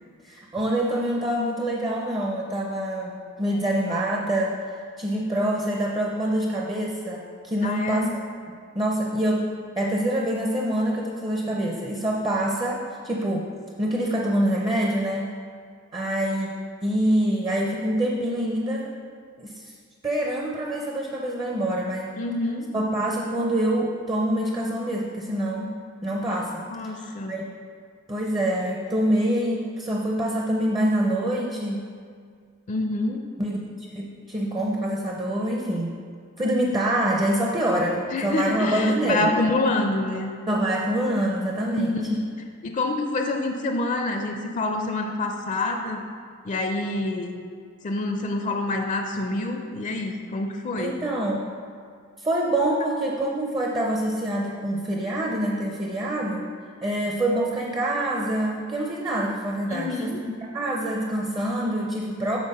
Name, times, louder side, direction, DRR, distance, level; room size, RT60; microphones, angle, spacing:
voice 1, 0.2-4.6 5.0-8.2 8.8-9.5 9.8-13.5 13.8-15.3 15.9-16.5 16.8-18.9 19.4-19.7 20.0-22.2 22.7-25.7 26.0-26.6 27.0-27.5 28.1-31.9 33.4-35.9 36.4-39.3 40.5-42.2 50.8-51.5 52.2-56.5 56.8-62.4, right 1 dB, 20° right, -1 dB, 0.5 m, -25 dB
voice 2, 7.6-8.1 22.2-22.7 26.7-27.4 32.7-33.2 38.1-40.3 41.8-42.3 42.6-46.0 46.4-47.4 47.8-51.0 59.7-60.2, left 2 dB, 35° left, 4 dB, 0.4 m, -27 dB
7.3 x 4.0 x 5.3 m, 2.1 s
head